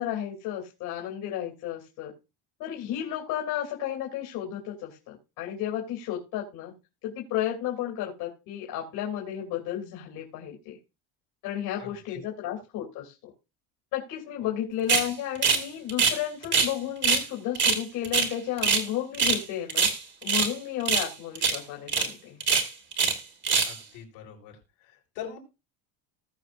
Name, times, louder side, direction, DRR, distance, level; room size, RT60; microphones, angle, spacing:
voice 1, 0.0-2.1 2.6-6.7 7.0-10.8 11.4-13.3 13.9-19.9 20.2-22.4, left 11 dB, 60° left, -1 dB, 3.2 m, -33 dB
voice 2, 11.8-12.2 14.4-14.5 23.6-24.5 25.1-25.4, left 8 dB, 80° left, -1 dB, 4.6 m, -42 dB
sound 1, 14.9-15.1 15.4-15.6 15.9-16.7 17.0-17.2 17.5-18.9 19.1-19.4 19.7-20.5 20.8-21.1 21.3-21.6 21.9-22.1 22.4-23.2 23.4-23.8, right 5 dB, 25° right, 1.5 m, -23 dB
19.5 x 6.5 x 2.6 m, 0.28 s
cardioid pair, 160°, 40 cm